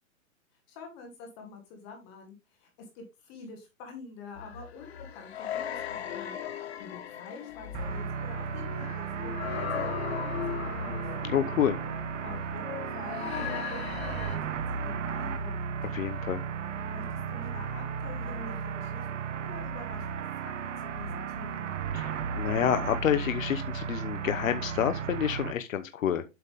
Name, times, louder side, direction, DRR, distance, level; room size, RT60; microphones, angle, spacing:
voice 1, 0.7-2.7 2.9-11.1 12.2-15.7 16.9-19.1 19.3-20.5 20.8-21.8, left 4 dB, 15° left, 0.8 m, -47 dB
sound 1, 4.3-14.4, left 9 dB, 50° left, 1.5 m, -38 dB
sound 2, 7.7-25.5, right 6 dB, 65° right, 0.9 m, -35 dB
voice 2, 11.2-11.8 15.9-16.4 21.9-26.3, left 9 dB, 75° left, 0.9 m, -28 dB
8.1 x 5.7 x 3.4 m
hypercardioid pair, 170°, 41 cm